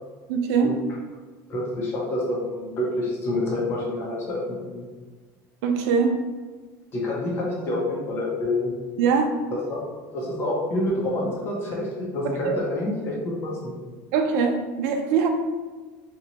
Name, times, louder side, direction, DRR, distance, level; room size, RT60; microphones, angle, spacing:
voice 1, 0.3-0.7 5.6-6.2 9.0-9.3 12.2-12.6 14.1-15.3, right 6 dB, 75° right, 5 dB, 0.5 m, -22 dB
voice 2, 1.5-4.8 6.9-8.7 9.5-9.8 10.1-13.7, left 1 dB, 30° left, -4 dB, 0.7 m, -27 dB
2.9 x 2.2 x 3.9 m, 1.3 s
cardioid pair, 175°, 8 cm